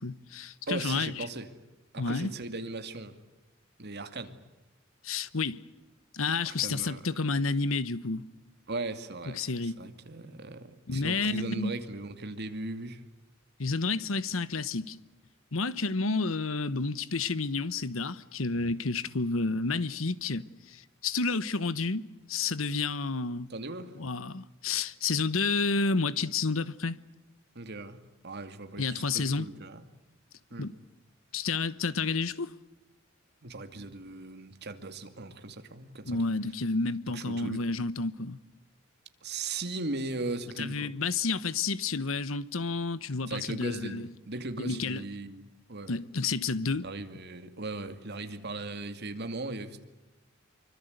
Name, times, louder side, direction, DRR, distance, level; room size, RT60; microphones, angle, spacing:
voice 1, 0.0-1.2 2.0-2.3 5.0-5.6 6.1-8.3 9.3-9.8 10.9-11.8 13.6-15.0 15.5-23.5 23.9-27.0 28.8-29.4 30.6-30.7 31.3-32.5 36.1-38.4 40.6-44.1 44.6-45.0 45.9-46.9, left 4 dB, 85° left, 1.1 m, -30 dB
voice 2, 0.7-1.5 1.9-3.2 3.8-4.4 6.5-7.0 8.7-13.0 23.5-23.9 27.5-28.0 28.2-29.8 30.5-30.7 33.4-36.2 37.1-37.6 39.2-40.9 43.3-45.9 46.8-49.8, right 2 dB, 55° right, 2.5 m, -38 dB
26.0 x 24.5 x 8.1 m
head